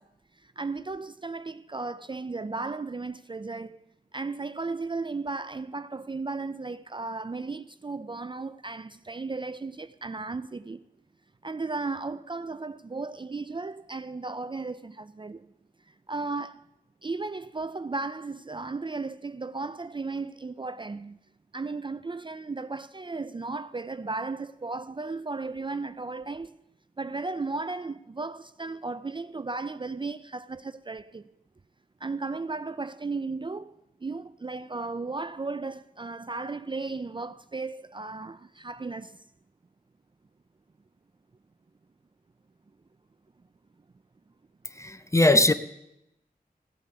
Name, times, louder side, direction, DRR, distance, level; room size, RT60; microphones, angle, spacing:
voice 1, 0.6-3.8 4.1-10.8 11.4-15.4 16.1-16.6 17.0-21.2 21.5-26.5 27.0-31.2 32.0-33.7 34.0-39.1, right 3 dB, 30° right, 0.4 m, -35 dB
voice 2, 44.7-45.5, left 2 dB, 20° left, 0.8 m, -20 dB
16.0 x 8.2 x 6.9 m
wide cardioid pair, 55°, 16 cm